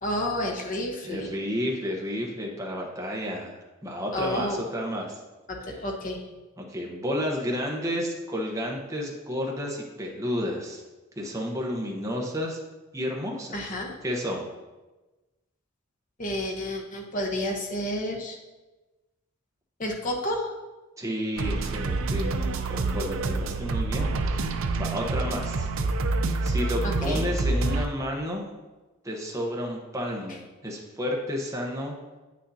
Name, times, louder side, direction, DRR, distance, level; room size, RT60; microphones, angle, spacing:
voice 1, 0.0-1.4 4.1-4.6 5.5-6.2 13.5-13.9 16.2-18.4 19.8-20.5 26.8-27.2, left 1 dB, 40° left, 1 dB, 1.0 m, -30 dB
voice 2, 1.0-3.5 3.8-5.2 6.6-10.8 11.2-12.6 12.9-13.6 14.0-14.4 21.0-25.7 26.4-28.4 29.0-31.9, equal, 15° right, -1 dB, 0.9 m, -31 dB
sound 1, 21.4-27.9, right 3 dB, 65° right, 0.5 m, -27 dB
8.4 x 6.3 x 2.8 m, 1.2 s
head